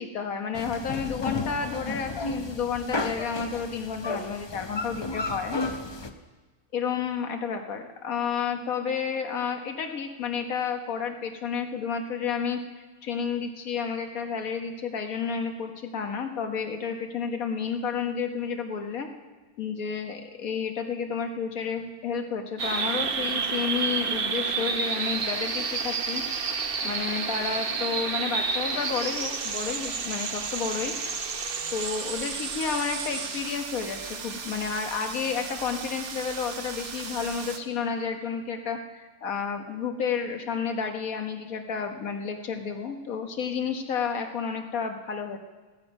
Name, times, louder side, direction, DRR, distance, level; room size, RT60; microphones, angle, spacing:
voice 1, 0.0-5.6 6.7-12.6 13.0-19.1 19.6-26.2 26.8-30.9 31.7-45.4, left 6 dB, 80° left, 5 dB, 1.6 m, -31 dB
sound 1, 0.5-6.1, left 3 dB, 30° left, 0.5 m, -33 dB
sound 2, 22.6-37.6, right 5 dB, 45° right, 1.0 m, -31 dB
16.0 x 13.0 x 5.4 m, 1.3 s
omnidirectional pair, 1.5 m